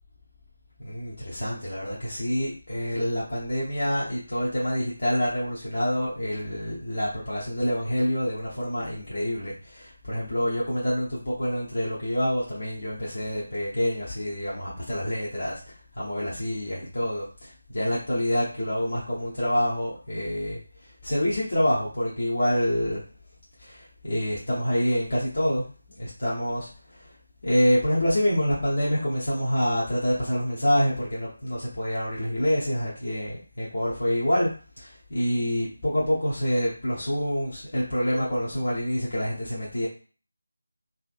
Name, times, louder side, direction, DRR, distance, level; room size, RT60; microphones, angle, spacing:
voice 1, 0.8-15.6 16.0-20.6 21.0-23.0 23.6-25.6 25.9-26.7 27.0-27.1 27.4-34.5 34.8-39.9, equal, 45° left, -7 dB, 0.8 m, -27 dB
3.0 x 2.5 x 2.5 m, 0.39 s
figure-of-eight pair, 160°, 0 cm